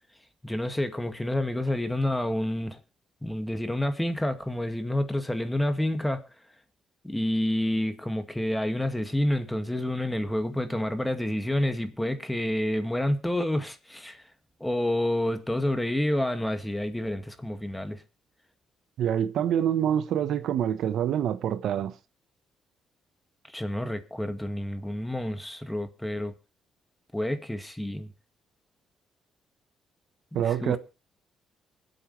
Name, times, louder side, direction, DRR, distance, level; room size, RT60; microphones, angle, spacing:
voice 1, 0.4-2.8 3.2-6.2 7.0-14.2 14.6-18.0 23.5-26.3 27.1-28.1 30.3-30.8, left 1 dB, 10° left, 2.1 m, -29 dB
voice 2, 19.0-21.9 30.3-30.8, right 10 dB, 75° right, 1.1 m, -26 dB
24.0 x 8.3 x 3.3 m
cardioid pair, 90°, 0 cm